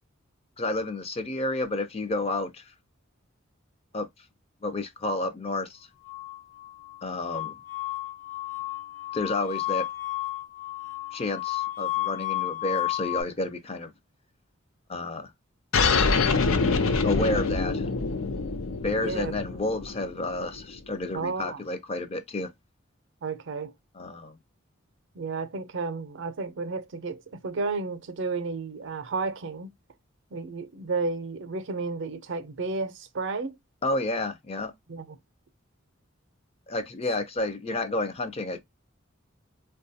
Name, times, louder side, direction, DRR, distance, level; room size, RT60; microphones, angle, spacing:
voice 1, 0.6-2.6 3.9-4.1 4.6-5.8 7.0-7.5 9.1-9.9 11.1-13.9 14.9-15.3 17.0-17.9 18.8-22.5 23.9-24.4 33.8-34.7 36.7-38.6, left 2 dB, 30° left, 0.4 m, -30 dB
sound 1, 6.1-13.2, left 18 dB, 70° left, 0.9 m, -32 dB
sound 2, 15.7-20.8, left 4 dB, 90° left, 0.5 m, -25 dB
voice 2, 18.9-19.3 21.1-21.6 23.2-23.7 25.1-29.7 30.3-33.6 34.9-35.0, right 4 dB, 65° right, 0.5 m, -32 dB
3.7 x 2.3 x 2.6 m
head